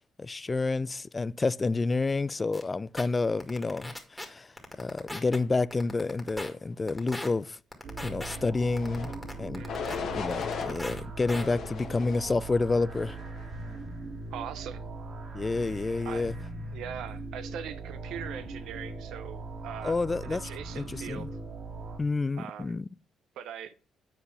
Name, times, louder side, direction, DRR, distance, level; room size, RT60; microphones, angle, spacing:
voice 1, 0.2-4.5 4.8-7.6 8.0-9.1 9.4-9.6 10.1-13.2 15.3-16.3 19.8-20.4 20.7-21.3 22.0-22.9, left 3 dB, 25° left, 0.3 m, -29 dB
sound 1, 2.5-2.6 3.0-3.1 3.4-4.2 4.6-5.4 5.7-6.5 6.9-7.3 7.7-8.4 8.8-10.0 10.3-11.0 11.3-11.4, left 1 dB, 5° left, 1.9 m, -38 dB
sound 2, 7.8-22.0, right 3 dB, 55° right, 1.9 m, -40 dB
sound 3, 8.7-9.1 9.7-10.7 11.3-12.3 12.9-13.3, left 6 dB, 70° left, 1.3 m, -36 dB
voice 2, 9.6-10.0 14.3-14.8 16.0-16.3 16.7-21.3 22.4-22.8 23.4-23.7, right 9 dB, 85° right, 0.7 m, -41 dB
7.7 x 4.7 x 5.5 m
cardioid pair, 90°, 0 cm